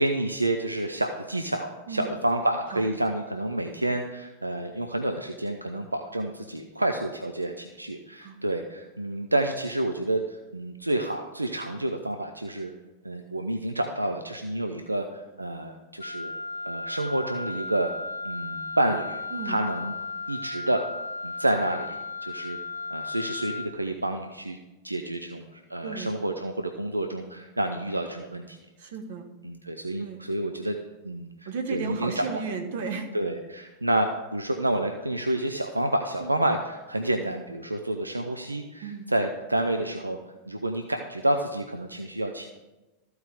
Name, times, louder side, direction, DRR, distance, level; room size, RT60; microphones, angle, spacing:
voice 1, 0.0-12.7 13.0-16.3 16.6-17.9 18.2-19.2 19.5-19.9 20.3-20.9 21.2-24.6 24.8-28.6 29.4-30.8 31.0-32.3 33.1-40.2 40.5-42.5, right 1 dB, 85° right, 5 dB, 0.5 m, -29 dB
Wind instrument woodwind instrument, 16.0-23.8, left 3 dB, 80° left, 0.3 m, -35 dB
voice 2, 25.8-26.1 28.8-29.2 30.0-30.2 31.4-33.1 36.2-36.3 38.8-39.1, right 5 dB, 55° right, 5 dB, 1.2 m, -34 dB
14.0 x 4.7 x 5.0 m, 1.1 s
figure-of-eight pair, 90°, 0 cm